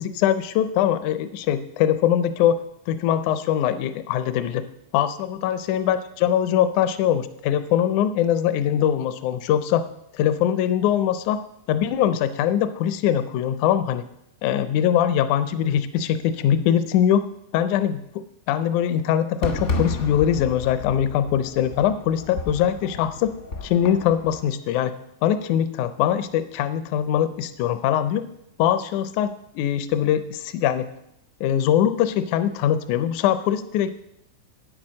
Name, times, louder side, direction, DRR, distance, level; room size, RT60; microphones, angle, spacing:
voice 1, 0.0-2.6 2.9-4.6 4.9-9.8 10.1-11.4 11.7-14.0 14.4-17.2 17.5-23.3 23.6-24.9 25.2-28.3 28.6-29.3 29.6-30.9 31.4-33.9, left 10 dB, 85° left, 12 dB, 2.0 m, -22 dB
Fireworks, 19.4-24.5, left 2 dB, 60° left, 0.7 m, -32 dB
9.1 x 8.9 x 6.2 m, 0.79 s
omnidirectional pair, 3.4 m